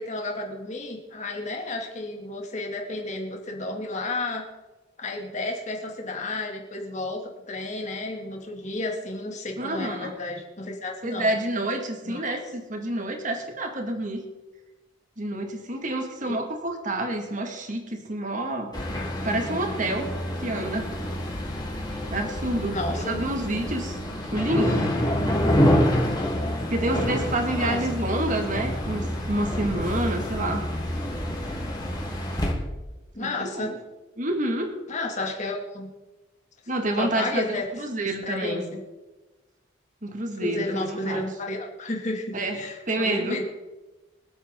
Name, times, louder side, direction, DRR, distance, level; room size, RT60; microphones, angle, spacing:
voice 1, 0.0-4.4 5.0-11.3 12.0-12.4 16.3-16.4 22.7-23.2 27.6-27.8 33.1-33.7 34.9-35.9 36.9-37.7 38.3-38.8 40.3-43.4, left 2 dB, 40° left, 1 dB, 2.6 m, -32 dB
voice 2, 9.6-10.1 11.0-14.2 15.2-18.7 19.2-20.1 20.4-20.9 22.1-24.0 24.3-24.9 26.7-30.6 33.2-33.8 34.2-34.8 36.7-38.7 40.0-41.2 42.3-42.6 42.9-43.4, right 1 dB, 40° right, 4 dB, 2.1 m, -28 dB
sound 1, 18.7-32.5, equal, 20° left, 2.9 m, -27 dB
25.0 x 8.7 x 3.9 m, 1.1 s
head